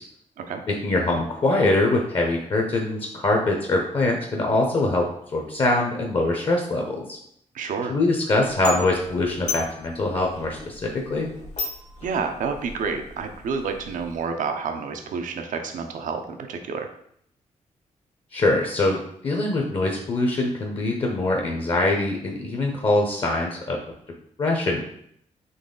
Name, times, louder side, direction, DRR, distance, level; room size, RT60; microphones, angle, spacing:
voice 1, 0.7-7.2 7.9-11.3 18.3-23.8 24.4-24.8, left 2 dB, 45° left, 1 dB, 0.7 m, -23 dB
voice 2, 7.5-8.0 12.0-16.9, right 5 dB, 85° right, 5 dB, 0.6 m, -29 dB
sound 1, 8.4-14.2, left 3 dB, 60° left, 1.3 m, -37 dB
4.0 x 3.1 x 3.8 m, 0.69 s
cardioid pair, 110°, 13 cm